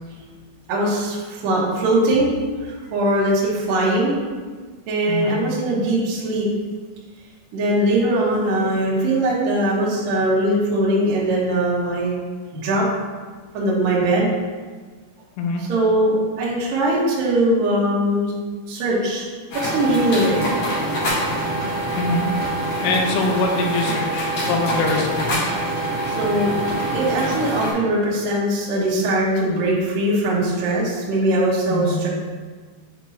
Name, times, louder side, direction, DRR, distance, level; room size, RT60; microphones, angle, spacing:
voice 1, 0.7-2.3 2.9-4.2 4.9-6.5 7.5-12.1 12.5-12.8 13.5-14.3 15.6-18.3 18.7-19.3 19.5-20.4 26.2-26.6 26.9-32.1, right 1 dB, 75° right, -6 dB, 2.0 m, -20 dB
voice 2, 5.1-5.4 15.4-15.6 22.0-22.3 22.8-25.2 31.7-32.0, left 3 dB, 80° left, 1 dB, 3.2 m, -23 dB
sound 1, 19.5-27.7, right 1 dB, 60° left, 1.6 m, -24 dB
8.2 x 4.4 x 2.8 m, 1.4 s
omnidirectional pair, 5.8 m